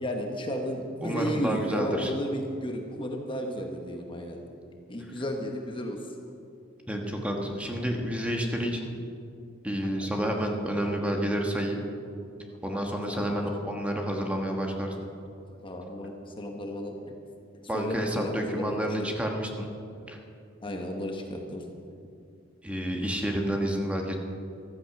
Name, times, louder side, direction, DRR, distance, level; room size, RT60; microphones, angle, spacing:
voice 1, 0.0-4.4 4.9-6.0 10.0-10.1 11.0-11.1 12.5-13.5 14.8-15.0 15.6-17.1 17.5-19.1 20.6-21.7, equal, 25° left, 2 dB, 1.1 m, -34 dB
voice 2, 1.0-2.1 6.9-8.9 9.6-11.8 12.6-14.9 17.7-19.7 20.1-20.2 22.6-24.1, equal, 5° right, 1 dB, 1.4 m, -29 dB
14.5 x 13.5 x 5.8 m, 2.5 s
head